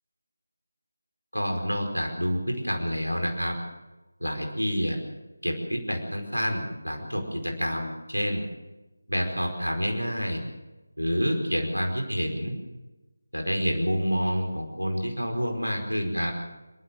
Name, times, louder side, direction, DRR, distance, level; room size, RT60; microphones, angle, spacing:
voice 1, 1.3-3.6 4.2-5.0 5.4-8.5 9.1-10.4 11.0-12.6 13.3-16.3, equal, 85° right, 3 dB, 4.9 m, -28 dB
27.0 x 13.5 x 7.6 m, 1.1 s
figure-of-eight pair, 160°, 0 cm